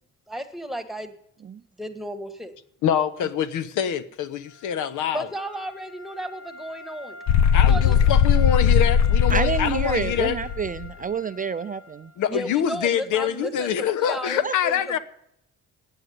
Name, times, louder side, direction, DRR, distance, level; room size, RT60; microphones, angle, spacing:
voice 1, 0.3-1.1 1.8-2.5 5.1-7.2 7.7-8.1 12.3-15.0, equal, ahead, 1.5 m, -34 dB
voice 2, 2.8-5.3 7.5-10.4 12.2-15.0, left 9 dB, 80° left, 1.0 m, -25 dB
Wind instrument woodwind instrument, 4.4-12.2, left 2 dB, 50° left, 1.4 m, -44 dB
sound 1, 7.3-10.9, left 8 dB, 65° left, 0.6 m, -19 dB
voice 3, 9.3-12.1 14.4-14.5, right 6 dB, 30° right, 0.4 m, -28 dB
9.9 x 8.7 x 9.3 m
cardioid pair, 90°, 30 cm